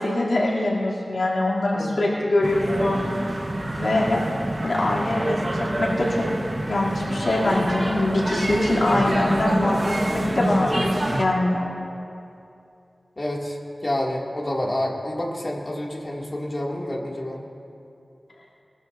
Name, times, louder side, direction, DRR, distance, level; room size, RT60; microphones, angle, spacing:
voice 1, 0.0-3.0 3.8-4.2 4.6-6.2 6.7-11.7, left 2 dB, 75° left, -5 dB, 2.8 m, -23 dB
sound 1, 2.4-11.2, right 1 dB, 35° right, 1.2 m, -26 dB
voice 2, 13.2-17.4, left 1 dB, 40° left, -2 dB, 2.3 m, -28 dB
22.5 x 13.5 x 2.6 m, 2.6 s
wide cardioid pair, 50°, 0 cm